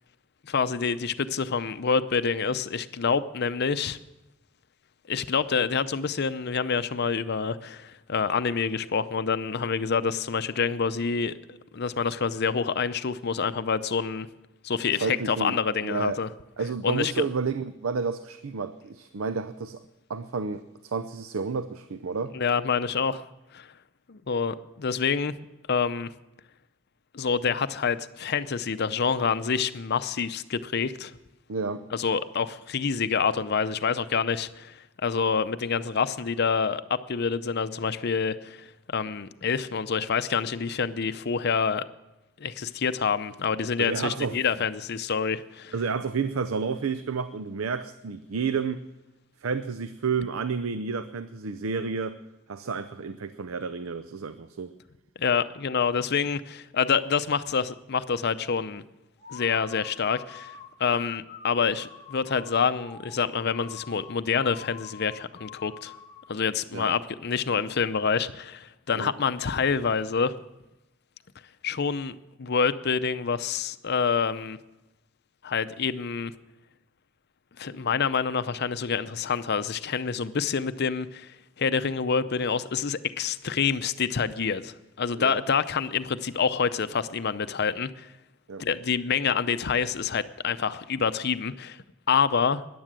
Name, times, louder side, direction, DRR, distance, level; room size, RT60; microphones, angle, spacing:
voice 1, 0.4-4.0 5.1-14.3 14.6-16.3 16.8-17.2 22.3-23.3 23.5-23.7 24.1-25.3 25.7-26.1 27.1-31.1 31.9-41.8 42.4-45.7 55.2-58.8 59.3-65.9 66.3-70.3 71.6-74.6 75.4-76.3 77.6-88.1 88.6-91.8 92.1-92.6, left 6 dB, 55° left, 13 dB, 0.6 m, -27 dB
voice 2, 15.0-16.2 16.6-19.8 20.1-22.4 31.5-31.8 43.8-44.4 45.7-48.8 49.4-52.2 52.5-54.7 66.7-66.9 68.9-69.1 85.1-85.4 88.5-88.7, right 5 dB, 90° right, 12 dB, 0.6 m, -30 dB
sound 1, 59.2-66.4, left 8 dB, 35° left, 1.0 m, -45 dB
14.0 x 10.5 x 7.5 m, 0.99 s
head